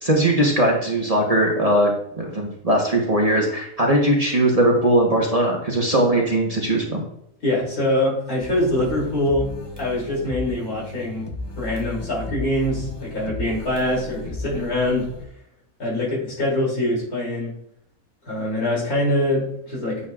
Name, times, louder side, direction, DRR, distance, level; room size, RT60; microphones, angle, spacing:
voice 1, 0.0-1.9 2.2-7.0, right 1 dB, 25° right, -1 dB, 1.1 m, -19 dB
voice 2, 7.4-9.5 9.8-11.3 11.6-15.1 15.8-17.5 18.3-20.1, left 1 dB, 80° left, -4 dB, 3.4 m, -24 dB
sound 1, 8.4-15.2, left 2 dB, 20° left, 0.7 m, -35 dB
9.0 x 6.7 x 2.4 m, 0.72 s
omnidirectional pair, 1.5 m